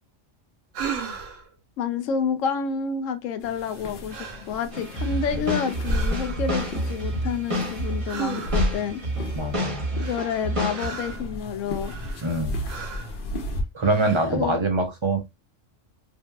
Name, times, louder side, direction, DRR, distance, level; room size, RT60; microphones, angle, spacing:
sound 1, 0.7-1.5 3.6-3.8 4.1-4.5 4.9-5.5 5.8-6.6 8.1-8.8 10.0-11.3 11.8-12.4 12.7-13.2 13.8-14.4, right 3 dB, 85° right, 1.0 m, -33 dB
voice 1, 1.8-9.0 10.0-11.9 14.3-14.6, left 6 dB, 80° left, 0.9 m, -29 dB
sound 2, 3.4-13.6, left 1 dB, 55° left, 0.7 m, -34 dB
sound 3, 4.7-10.9, equal, 30° right, 0.9 m, -29 dB
voice 2, 9.3-10.1 12.2-12.6 13.7-15.2, right 2 dB, 50° right, 0.3 m, -25 dB
3.0 x 2.6 x 2.2 m
omnidirectional pair, 1.3 m